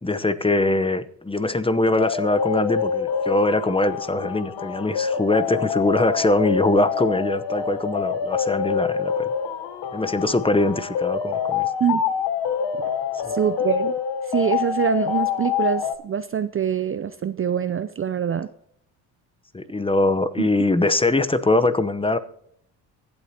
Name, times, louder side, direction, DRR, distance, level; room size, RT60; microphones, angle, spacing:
voice 1, 0.0-9.2 9.9-11.7 13.2-13.3 19.5-22.2, left 2 dB, 10° left, 13 dB, 0.9 m, -22 dB
sound 1, 2.0-15.9, left 7 dB, 60° left, 1.2 m, -26 dB
voice 2, 13.3-13.9 14.3-18.5 20.4-20.5, right 8 dB, 30° right, 12 dB, 0.5 m, -24 dB
24.0 x 8.2 x 2.9 m, 0.72 s
supercardioid pair, 65°, 44 cm